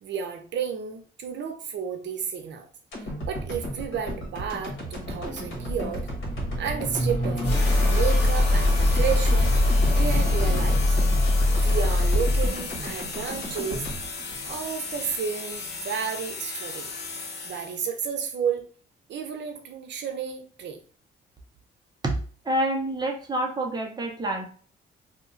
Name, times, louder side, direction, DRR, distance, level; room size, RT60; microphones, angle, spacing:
voice 1, 0.0-2.7 3.3-6.1 6.6-11.0 11.6-13.8 14.5-16.9 17.4-18.6 19.1-20.8, right 7 dB, 65° right, 5 dB, 0.7 m, -32 dB
sound 1, 2.9-15.1 15.5-15.6, equal, 80° left, 1.3 m, -35 dB
sound 2, 4.8-12.7, left 2 dB, 25° left, 1.4 m, -23 dB
sound 3, 7.4-18.0, left 4 dB, 60° left, 0.8 m, -36 dB
voice 2, 22.4-24.5, right 1 dB, 20° right, 1 dB, 0.6 m, -27 dB
2.8 x 2.2 x 3.8 m, 0.43 s
cardioid pair, 140°, 20 cm